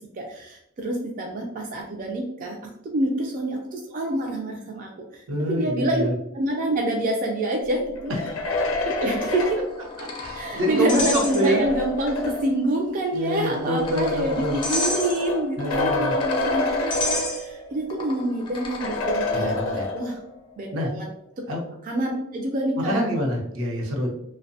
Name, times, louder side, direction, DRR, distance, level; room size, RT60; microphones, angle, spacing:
voice 1, 0.2-2.6 2.9-5.2 5.5-6.1 6.3-8.1 9.0-9.6 10.4-19.5 19.9-20.2 20.6-21.1 21.8-23.1, right 1 dB, 40° right, 1 dB, 0.3 m, -27 dB
voice 2, 5.3-6.1 8.2-8.3 10.0-11.6 13.1-14.6 15.6-16.1 19.3-19.9 20.7-20.9 21.5-21.6 22.8-24.1, equal, 80° right, -1 dB, 0.7 m, -26 dB
sound 1, 8.0-12.7 13.6-17.7 18.1-18.2 18.8-20.4, left 2 dB, 85° left, 0.4 m, -28 dB
sound 2, 9.2-11.9 12.2-12.3 13.1-19.0, left 2 dB, 25° left, 0.4 m, -32 dB
2.6 x 2.1 x 2.6 m, 0.77 s
head